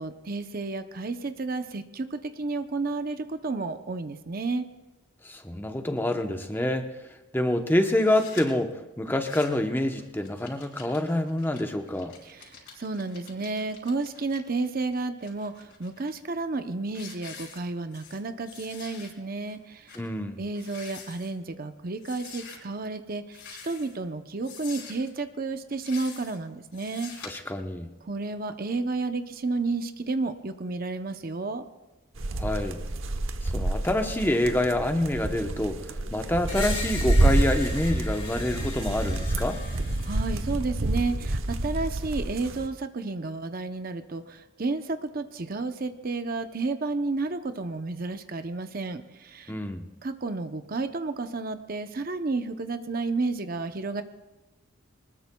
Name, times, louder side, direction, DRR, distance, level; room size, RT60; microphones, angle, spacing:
voice 1, 0.0-4.7 12.3-20.0 20.4-27.1 28.0-31.6 40.0-49.5 50.0-54.0, right 3 dB, 45° right, 8 dB, 0.7 m, -31 dB
voice 2, 5.2-6.9 7.3-12.1 20.0-20.4 27.2-27.9 32.4-32.8 33.4-35.8 36.1-39.6 49.5-49.9, left 1 dB, 10° left, 5 dB, 0.8 m, -27 dB
sound 1, 7.9-8.4 9.1-9.7 10.0-14.4 14.9-16.1 16.5-16.7 16.9-18.2 18.4-19.1 19.5-19.6 19.9-20.0 20.5-21.3 22.0-22.6 23.3-24.0 24.4-25.1 25.7-26.4 26.7-27.3, left 6 dB, 60° left, 4.5 m, -46 dB
sound 2, 32.2-42.7, right 2 dB, 75° right, 0.9 m, -28 dB
Screech, 36.5-40.5, left 2 dB, 30° left, 2.4 m, -38 dB
24.0 x 20.0 x 2.3 m, 1.1 s
head